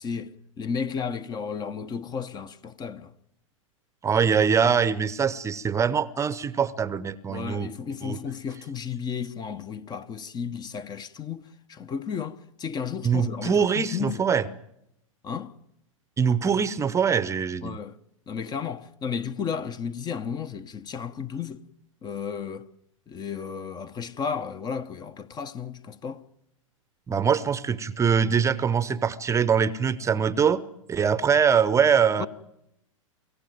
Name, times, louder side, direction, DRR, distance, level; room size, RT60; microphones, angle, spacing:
voice 1, 0.0-3.1 7.3-14.2 15.2-15.5 17.6-18.0 18.3-21.6 22.0-22.7 23.1-26.2 32.2-32.3, left 6 dB, 25° left, 0.9 m, -33 dB
voice 2, 4.0-7.7 8.0-8.2 13.0-14.4 16.2-17.8 27.1-30.6 30.9-32.3, right 6 dB, 15° right, 0.8 m, -23 dB
24.5 x 15.0 x 9.4 m
hypercardioid pair, 105°, 17 cm